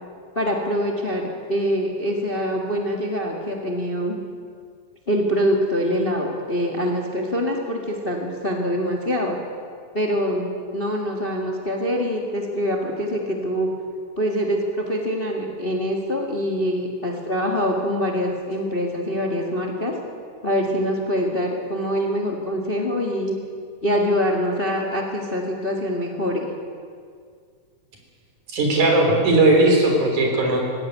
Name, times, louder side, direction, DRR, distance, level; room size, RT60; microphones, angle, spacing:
voice 1, 0.3-4.2 5.1-9.4 9.9-13.7 14.2-19.9 20.4-23.3 23.8-26.5, equal, 25° left, 1 dB, 1.6 m, -24 dB
voice 2, 28.5-30.6, right 2 dB, 70° right, 1 dB, 5.1 m, -17 dB
19.0 x 15.5 x 9.3 m, 2.1 s
omnidirectional pair, 3.6 m